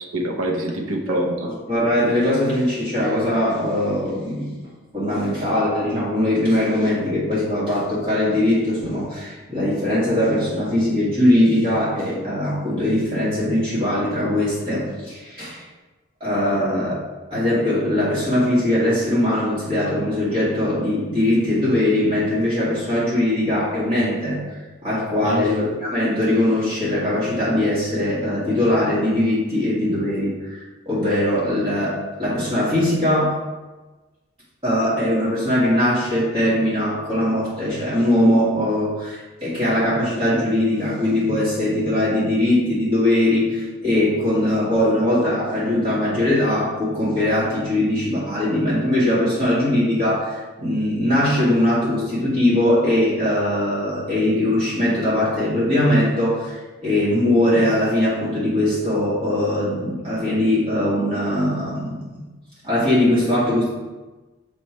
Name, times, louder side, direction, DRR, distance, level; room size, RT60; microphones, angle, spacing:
voice 1, 0.0-1.3 25.2-25.4, right 1 dB, 75° right, 1 dB, 0.9 m, -25 dB
voice 2, 1.1-4.7 4.9-15.6 16.2-17.0 17.3-24.4 24.8-33.4 34.6-62.2 62.6-63.7, left 1 dB, 25° right, -9 dB, 1.8 m, -21 dB
6.6 x 3.2 x 4.5 m, 1.2 s
head